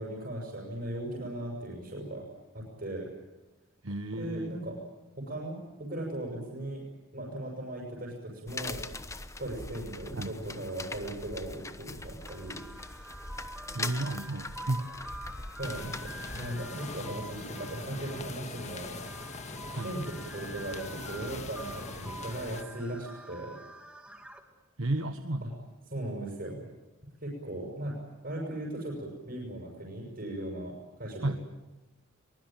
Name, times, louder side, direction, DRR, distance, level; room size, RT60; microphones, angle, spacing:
voice 1, 0.0-2.3 2.5-3.1 4.2-4.8 5.2-6.8 7.1-8.8 9.4-12.6 15.6-19.0 19.8-23.6 25.4-25.5 25.9-26.6 27.2-28.0 28.2-31.3, right 1 dB, 45° right, -2 dB, 7.0 m, -38 dB
voice 2, 3.8-4.5 10.1-10.3 13.7-14.8 19.7-19.9 24.8-25.5 31.2-31.3, right 2 dB, 70° right, 7 dB, 1.3 m, -32 dB
sound 1, 8.5-16.5, left 3 dB, 15° left, 1.0 m, -41 dB
sound 2, 12.3-24.4, right 1 dB, 5° right, 2.4 m, -46 dB
sound 3, 15.6-22.6, left 3 dB, 35° left, 1.9 m, -42 dB
23.5 x 22.0 x 9.1 m, 1.1 s
head